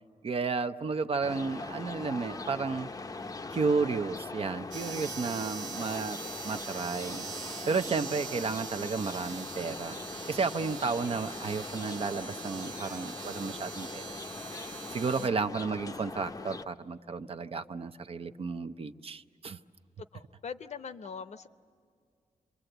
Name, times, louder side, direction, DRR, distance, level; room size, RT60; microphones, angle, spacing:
voice 1, 0.2-2.9 3.5-6.2 6.4-10.0 10.3-14.0 14.9-19.6, right 4 dB, 50° right, 9 dB, 0.7 m, -32 dB
sound 1, 1.2-16.6, left 3 dB, 25° left, 0.6 m, -41 dB
sound 2, 4.7-15.3, right 5 dB, 85° right, 1.8 m, -43 dB
voice 2, 20.0-21.5, left 6 dB, 60° left, 10 dB, 0.8 m, -42 dB
27.5 x 23.0 x 7.9 m, 2.3 s
wide cardioid pair, 100°, 13 cm